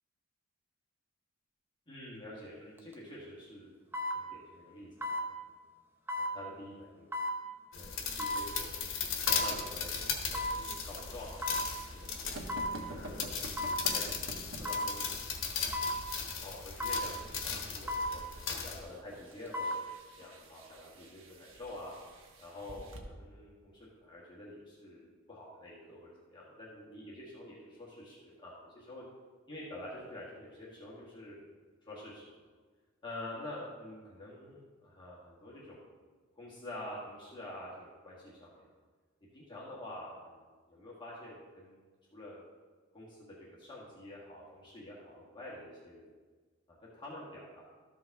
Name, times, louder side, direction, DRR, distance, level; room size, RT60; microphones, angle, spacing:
voice 1, 1.9-3.7 4.1-5.5 6.2-7.1 7.7-8.9 9.2-12.3 12.9-13.6 13.9-14.0 14.5-15.8 16.4-18.2 18.6-19.8 20.2-21.9 22.4-29.0 29.5-31.4 31.9-32.4 33.0-35.8 36.4-38.6 39.3-42.4 42.9-46.1 46.7-47.6, left 1 dB, 20° left, -6 dB, 1.5 m, -48 dB
sound 1, 2.8-2.9 3.9-4.2 5.0-5.3 6.1-6.3 7.1-7.4 8.2-8.4 9.3-9.5 10.3-10.6 11.4-11.7 12.5-12.8 13.6-13.8 14.6-14.9 15.7-16.0 16.8-17.1 17.9-18.1 19.3-19.8 20.2-20.3, left 1 dB, 10° right, 0.7 m, -34 dB
sound 2, 7.7-18.8, left 6 dB, 65° left, 1.2 m, -37 dB
sound 3, 9.1-23.0, right 1 dB, 70° right, 1.1 m, -50 dB
13.0 x 5.3 x 3.5 m, 1.4 s
head